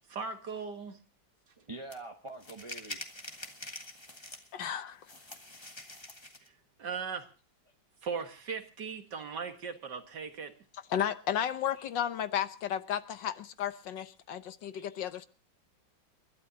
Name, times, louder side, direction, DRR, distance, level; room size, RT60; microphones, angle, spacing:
voice 1, 0.2-0.9 6.8-7.3 8.0-10.5, right 5 dB, 60° right, 6 dB, 2.2 m, -38 dB
voice 2, 1.6-3.0 11.7-11.9 14.7-15.2, right 2 dB, 25° right, 5 dB, 0.8 m, -46 dB
sound 1, 1.9-2.0 2.4-4.6 5.0-6.5, left 1 dB, 15° left, 1.6 m, -45 dB
voice 3, 4.5-5.1 10.9-15.3, left 9 dB, 70° left, 11 dB, 1.5 m, -33 dB
29.5 x 12.5 x 2.8 m, 0.33 s
omnidirectional pair, 2.1 m